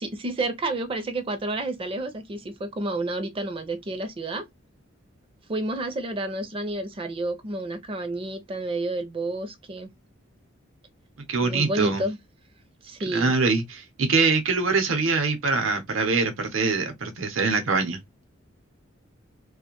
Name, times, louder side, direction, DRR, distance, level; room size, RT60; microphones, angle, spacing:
voice 1, 0.0-4.4 5.5-9.9 11.4-12.2 12.8-13.3, right 2 dB, 30° right, 0.4 m, -30 dB
voice 2, 11.3-12.0 13.0-18.0, right 4 dB, 90° right, 0.7 m, -24 dB
2.5 x 2.1 x 2.8 m
head